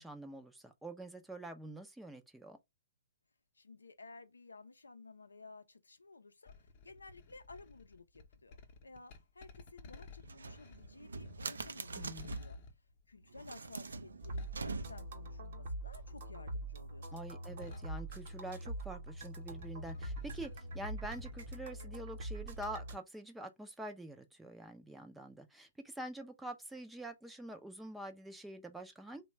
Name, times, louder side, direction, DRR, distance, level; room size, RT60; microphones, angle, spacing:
voice 1, 0.0-2.6 11.9-12.3 17.1-29.2, right 1 dB, 5° right, 0.4 m, -46 dB
voice 2, 3.5-12.6 13.1-17.4, left 3 dB, 90° left, 0.5 m, -55 dB
sound 1, 6.5-15.7 16.0-18.9 19.1-21.5, left 2 dB, 40° left, 0.7 m, -53 dB
sound 2, 10.2-12.6 13.3-15.2, right 3 dB, 80° right, 0.4 m, -44 dB
sound 3, 14.2-23.0, right 1 dB, 55° right, 0.9 m, -44 dB
3.0 x 2.2 x 3.0 m
hypercardioid pair, 135°, 0 cm